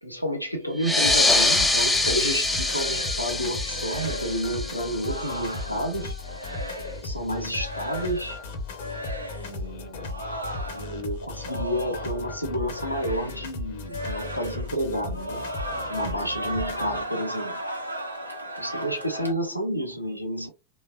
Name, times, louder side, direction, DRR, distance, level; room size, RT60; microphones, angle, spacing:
voice 1, 0.0-6.2 7.0-8.4 9.3-10.3 10.7-15.5 15.9-17.6 18.6-20.5, equal, 90° left, 0.7 m, -30 dB
sound 1, 0.7-5.9, left 2 dB, 10° left, 0.4 m, -25 dB
sound 2, 0.9-7.1 7.5-8.4 8.7-9.5 10.0-12.3 12.6-13.5 13.8-14.8 15.1-19.3, equal, 85° right, 0.6 m, -36 dB
sound 3, 1.0-17.0, left 3 dB, 50° left, 0.7 m, -36 dB
3.2 x 2.2 x 2.4 m
figure-of-eight pair, 90°, 0 cm